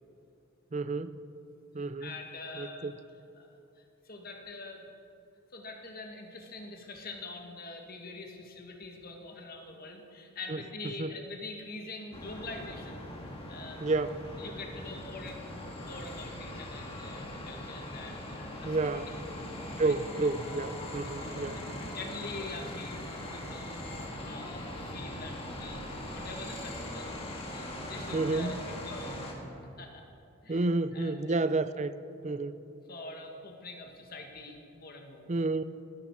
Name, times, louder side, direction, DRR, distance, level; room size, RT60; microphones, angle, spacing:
voice 1, 0.7-1.2 1.7-2.1 2.5-2.9 10.5-10.6 11.0-11.1 13.8-14.2 18.6-19.1 19.8-21.6 28.1-28.6 30.5-31.9 32.2-32.6 35.3-35.6, right 3 dB, 30° right, 13 dB, 0.5 m, -30 dB
voice 2, 1.8-2.9 3.3-4.8 5.5-13.0 13.5-13.8 14.3-18.8 19.8-19.9 21.0-27.1 27.5-29.2 29.8-30.0 30.4-31.4 32.9-35.3, left 3 dB, 45° left, 3 dB, 1.8 m, -45 dB
sound 1, 12.1-29.3, left 1 dB, 25° left, 1.9 m, -41 dB
20.0 x 11.5 x 4.8 m, 2.6 s
head